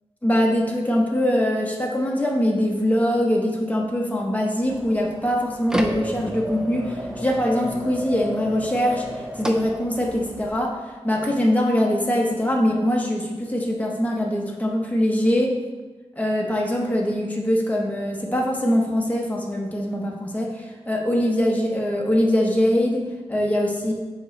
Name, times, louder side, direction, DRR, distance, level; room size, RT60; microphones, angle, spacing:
voice 1, 0.2-10.8 11.0-15.5 16.2-23.9, equal, 15° left, -1 dB, 1.0 m, -22 dB
sound 1, 4.6-10.6, equal, 5° right, 0.6 m, -32 dB
7.6 x 4.9 x 3.3 m, 1.3 s
wide cardioid pair, 95°, 11 cm